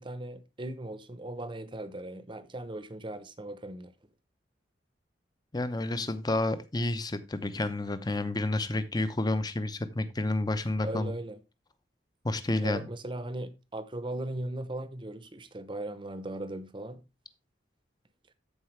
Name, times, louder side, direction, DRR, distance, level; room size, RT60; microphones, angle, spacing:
voice 1, 0.0-3.9 10.8-11.4 12.6-17.0, right 1 dB, 25° right, 0.8 m, -38 dB
voice 2, 5.5-11.1 12.2-12.9, left 2 dB, 20° left, 0.7 m, -30 dB
13.5 x 4.7 x 3.3 m
head